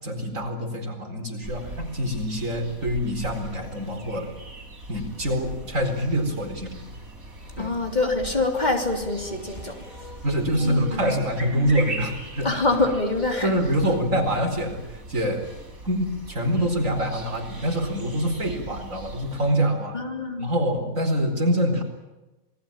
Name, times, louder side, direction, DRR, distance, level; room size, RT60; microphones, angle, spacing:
voice 1, 0.0-4.3 4.9-6.8 7.6-7.7 10.2-12.6 13.4-15.5 15.8-20.0 20.4-21.8, equal, 70° right, 4 dB, 4.8 m, -25 dB
sound 1, 1.4-19.5, right 2 dB, 90° right, 5.3 m, -41 dB
voice 2, 7.6-11.1 12.4-13.9 19.9-20.5, left 2 dB, 30° left, 3 dB, 3.4 m, -26 dB
27.0 x 20.5 x 8.9 m, 1.0 s
omnidirectional pair, 1.4 m